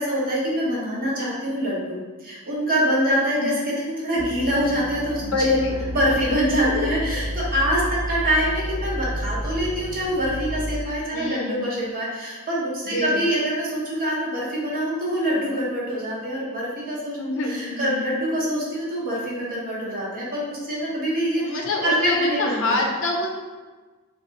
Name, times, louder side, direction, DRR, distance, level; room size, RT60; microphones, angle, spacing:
voice 1, 0.0-5.6 5.9-17.2 17.5-22.8, equal, 40° right, -5 dB, 0.9 m, -25 dB
sound 1, 4.2-10.8, equal, 80° right, 0.8 m, -31 dB
voice 2, 5.2-5.8 6.6-6.9 11.1-11.6 12.9-13.3 17.2-18.0 21.4-23.3, left 2 dB, 60° left, 0 dB, 0.5 m, -26 dB
2.9 x 2.4 x 3.9 m, 1.3 s
head